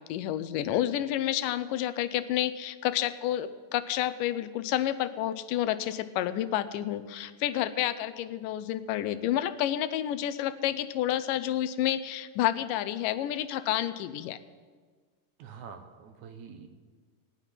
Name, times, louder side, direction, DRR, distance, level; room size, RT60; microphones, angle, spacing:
voice 1, 0.0-14.4, left 12 dB, 85° left, 12 dB, 2.2 m, -30 dB
voice 2, 15.4-16.7, right 6 dB, 70° right, 7 dB, 2.1 m, -46 dB
17.0 x 5.7 x 9.9 m, 1.5 s
omnidirectional pair, 3.8 m